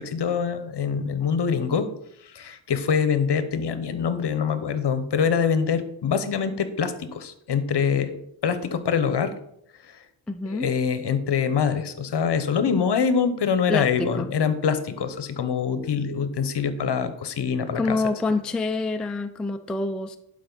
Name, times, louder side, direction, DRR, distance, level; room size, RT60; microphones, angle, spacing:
voice 1, 0.0-1.9 2.2-9.4 9.8-10.0 10.5-18.0, left 6 dB, 55° left, 11 dB, 1.0 m, -24 dB
voice 2, 10.3-10.7 13.7-14.3 17.7-20.2, left 3 dB, ahead, 7 dB, 0.4 m, -27 dB
11.5 x 5.1 x 3.9 m, 0.74 s
cardioid pair, 80°, 49 cm